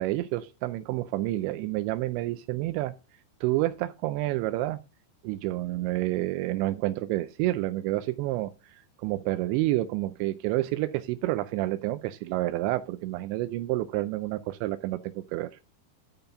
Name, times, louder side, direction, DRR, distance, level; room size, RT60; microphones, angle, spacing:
voice 1, 0.0-2.9 3.4-4.8 5.2-15.5, right 16 dB, 85° right, 10 dB, 2.9 m, -29 dB
10.5 x 5.4 x 5.6 m, 0.30 s
omnidirectional pair, 5.2 m